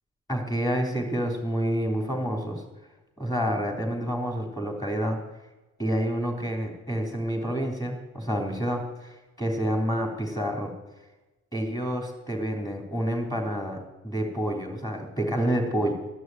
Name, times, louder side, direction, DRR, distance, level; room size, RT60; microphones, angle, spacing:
voice 1, 0.3-2.6 3.2-5.2 5.8-10.7 11.5-15.9, equal, 10° left, 2 dB, 3.6 m, -28 dB
13.0 x 6.3 x 9.5 m, 1.1 s
cardioid pair, 90°, 30 cm